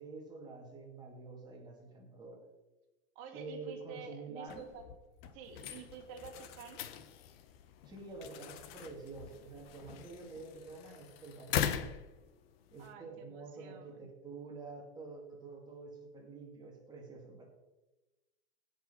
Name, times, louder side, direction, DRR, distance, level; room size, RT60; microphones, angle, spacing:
voice 1, 0.0-2.4 3.3-4.7 7.9-11.9 12.7-17.5, right 3 dB, 10° right, -1 dB, 2.3 m, -48 dB
voice 2, 3.2-4.9 5.3-6.8 12.8-14.0, right 5 dB, 35° right, 3 dB, 2.3 m, -49 dB
sound 1, 4.5-10.2, left 8 dB, 30° left, 0.7 m, -55 dB
sound 2, 5.4-12.9, left 9 dB, 55° left, 1.0 m, -41 dB
16.5 x 5.6 x 5.6 m, 1.1 s
supercardioid pair, 175°, 35 cm